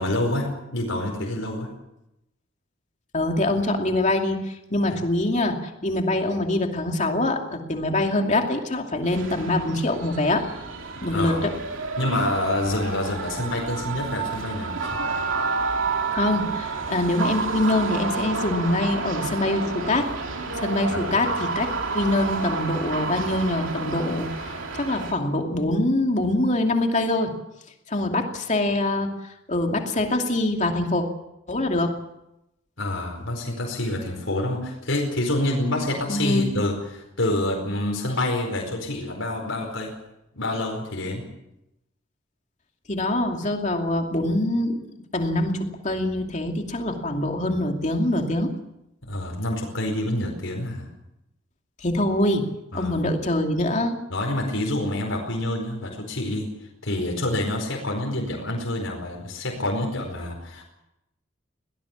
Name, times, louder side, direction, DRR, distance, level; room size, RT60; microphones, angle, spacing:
voice 1, 0.0-1.7 11.1-11.4 12.0-14.8 20.9-21.2 32.8-40.0 40.3-41.2 49.1-50.8 52.7-53.0 54.1-56.5 56.8-60.6, left 1 dB, 75° left, 0 dB, 4.8 m, -27 dB
voice 2, 3.1-10.4 11.0-11.5 16.1-20.1 20.6-21.7 21.9-27.3 27.9-29.1 29.5-31.0 31.5-31.9 36.1-36.5 42.9-44.8 45.1-48.5 51.8-52.5 52.7-53.9, left 1 dB, 35° left, 3 dB, 2.6 m, -24 dB
sound 1, 9.0-25.1, right 4 dB, 75° right, 2.9 m, -30 dB
23.0 x 18.5 x 7.4 m, 0.88 s
head